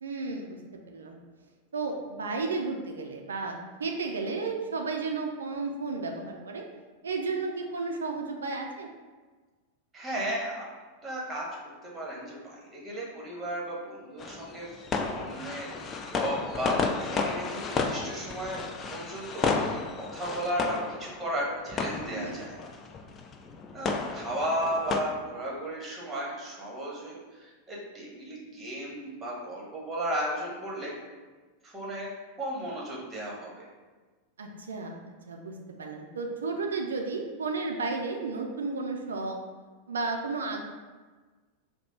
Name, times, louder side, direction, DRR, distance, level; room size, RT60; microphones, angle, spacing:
voice 1, 0.0-1.2 1.7-6.6 7.0-8.9 22.1-22.5 34.4-35.0 35.3-39.4 39.9-40.6, right 3 dB, 70° right, 2 dB, 0.4 m, -33 dB
voice 2, 9.9-10.6 11.0-11.4 11.8-18.6 18.9-22.6 23.7-30.9 31.6-32.1 32.4-33.7, right 1 dB, 15° right, -4 dB, 1.3 m, -35 dB
sound 1, 14.2-25.0, left 4 dB, 25° left, 0.4 m, -33 dB
4.8 x 2.1 x 4.5 m, 1.3 s
figure-of-eight pair, 90°, 0 cm